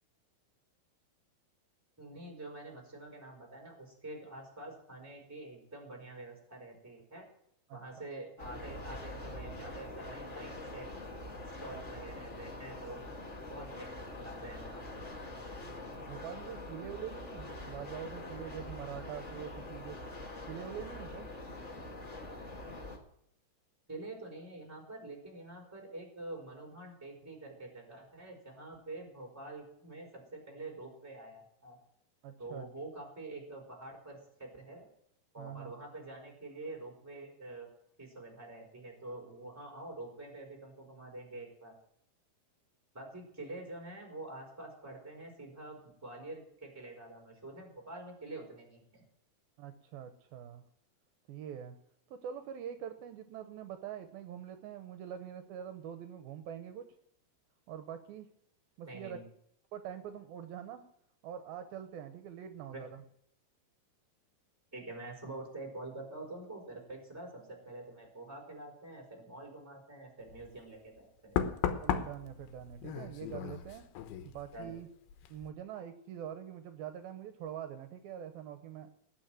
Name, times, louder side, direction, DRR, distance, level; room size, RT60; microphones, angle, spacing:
voice 1, 2.0-7.2 7.7-10.9 11.6-13.0 13.5-15.1 23.9-31.8 32.4-34.9 35.3-37.7 38.0-41.7 42.9-49.0 58.8-59.2 62.7-62.8 64.7-71.4 74.5-74.7, right 2 dB, 5° right, 0 dB, 3.8 m, -46 dB
sound 1, 8.4-23.0, left 2 dB, 35° left, 1.2 m, -44 dB
voice 2, 15.6-20.0 20.5-21.3 32.2-32.7 35.4-35.7 49.6-50.6 51.3-51.8 52.1-56.9 57.7-58.3 58.8-59.2 59.7-60.8 61.2-63.0 71.8-73.9 74.2-74.9 75.3-78.9, right 9 dB, 75° right, 8 dB, 2.6 m, -44 dB
Knock, 70.3-70.5 71.4-74.8 75.1-75.5, left 9 dB, 80° left, 2.9 m, -36 dB
18.5 x 6.2 x 9.0 m, 0.71 s
omnidirectional pair, 4.4 m